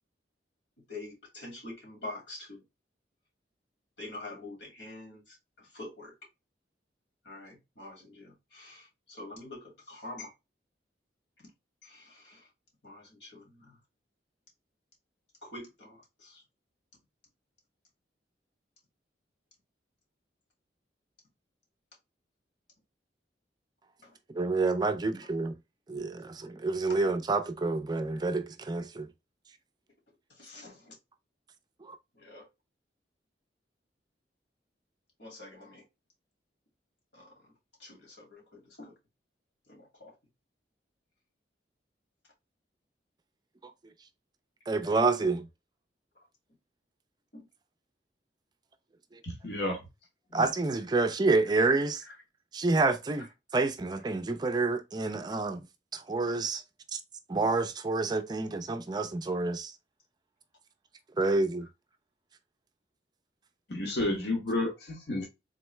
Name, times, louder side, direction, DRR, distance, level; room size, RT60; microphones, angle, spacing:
voice 1, 0.9-2.6 4.0-6.1 7.2-10.3 11.8-12.5 12.8-13.8 15.4-16.4 24.0-24.2 26.9-27.0 30.3-31.0 32.1-32.5 35.2-35.9 37.1-37.5 37.8-39.0 39.7-40.2 47.3-47.5 52.0-52.2 53.2-53.3 55.1-55.2, left 2 dB, 85° left, 2.3 m, -46 dB
voice 2, 24.3-25.6 25.9-29.1 31.8-32.0 44.7-45.5 49.1-49.2 50.3-52.0 52.5-53.3 53.5-55.7 55.9-56.6 56.9-57.0 57.3-59.7 61.2-61.7, right 3 dB, 25° right, 0.4 m, -28 dB
voice 3, 49.2-49.9 63.7-65.3, left 2 dB, 65° left, 1.1 m, -31 dB
3.8 x 3.2 x 3.1 m
head